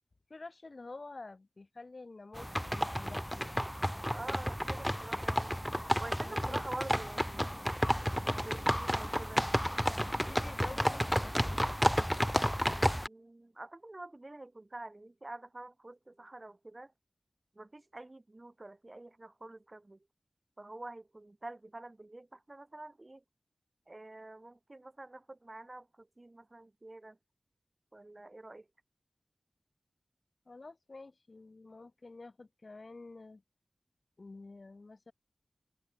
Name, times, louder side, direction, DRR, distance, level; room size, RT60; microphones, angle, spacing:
voice 1, 0.3-3.6 6.1-6.6 10.0-11.6 30.5-33.4 34.2-35.1, left 3 dB, 55° left, 4.9 m, -49 dB
sound 1, 2.3-13.1, equal, ahead, 1.1 m, -31 dB
voice 2, 4.1-5.5 6.0-7.5 8.4-9.5 13.0-16.9 17.6-20.0 20.6-23.2 23.9-27.2 27.9-28.6, right 2 dB, 35° right, 6.4 m, -47 dB
wide cardioid pair, 75°, 0 cm